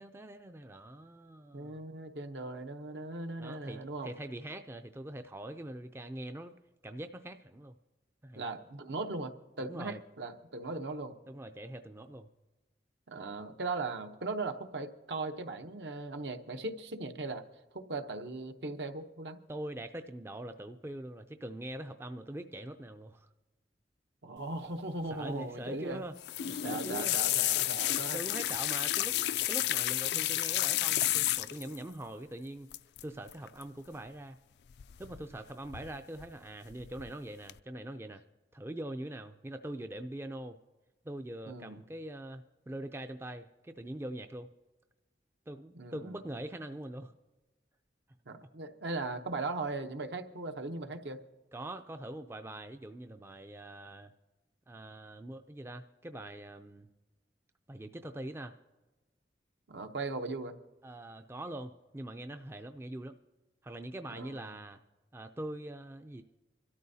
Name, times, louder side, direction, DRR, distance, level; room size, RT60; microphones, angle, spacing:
voice 1, 0.0-1.8 3.4-6.5 6.8-7.8 8.2-8.5 9.6-10.0 11.3-12.3 19.5-23.3 25.1-26.1 26.4-27.2 28.1-29.2 29.5-32.7 33.0-34.4 35.0-38.2 38.5-40.6 41.0-44.5 45.5-47.1 51.5-54.1 54.7-56.9 57.7-58.6 60.8-63.2 63.6-64.8 65.1-66.2, right 1 dB, 15° right, 7 dB, 0.3 m, -43 dB
voice 2, 1.5-4.1 8.4-11.2 13.1-17.4 17.7-19.4 24.2-26.0 26.6-28.2 30.1-30.2 41.5-41.8 45.7-46.2 48.3-51.2 59.7-60.5 64.1-64.6, right 3 dB, 75° right, 7 dB, 0.9 m, -38 dB
sound 1, 26.2-31.8 32.7-33.0 33.3-33.6 34.8-35.4 35.7-36.3 36.7-37.1 37.5-37.6, left 14 dB, 70° left, 0.3 m, -31 dB
25.5 x 13.0 x 2.7 m, 1.2 s
head